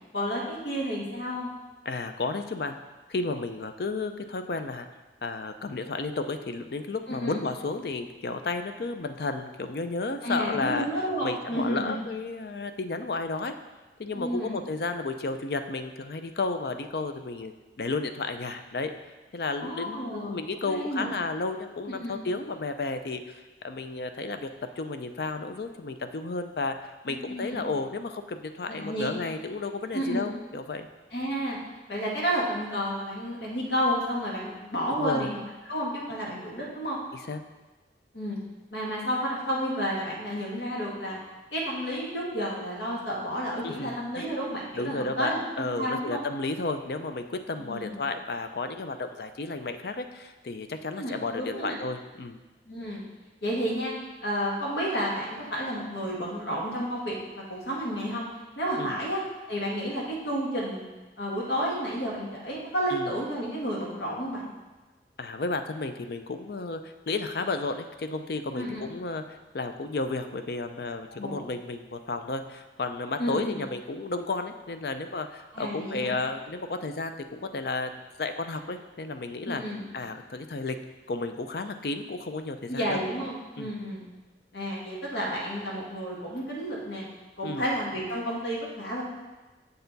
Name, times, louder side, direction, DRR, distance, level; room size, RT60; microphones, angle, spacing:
voice 1, 0.1-1.5 7.1-7.4 10.2-12.0 14.1-14.5 19.6-21.1 22.0-22.1 27.1-27.6 28.7-29.1 29.9-30.3 31.1-31.6 31.9-35.4 35.7-37.0 38.1-38.4 38.7-41.2 41.5-46.2 47.6-48.0 50.9-51.8 52.7-53.0 53.4-53.9 54.2-58.3 58.6-59.2 59.5-60.9 61.2-64.5 68.6-68.8 71.1-71.4 73.2-73.4 75.5-76.2 79.5-79.9 82.7-84.0 84.5-87.1 87.4-89.0, equal, 80° left, -3 dB, 1.8 m, -31 dB
voice 2, 1.9-2.8 3.1-4.9 5.2-10.9 11.2-13.5 14.0-17.5 17.8-18.9 19.3-23.2 23.6-24.5 24.8-30.9 35.0-35.3 37.1-37.4 43.6-44.2 44.7-52.4 58.8-59.0 62.9-63.1 65.2-79.6 79.9-80.8 81.1-83.0 83.6-83.7 87.4-87.7, left 3 dB, 60° left, 8 dB, 0.5 m, -32 dB
6.8 x 6.6 x 4.0 m, 1.2 s
head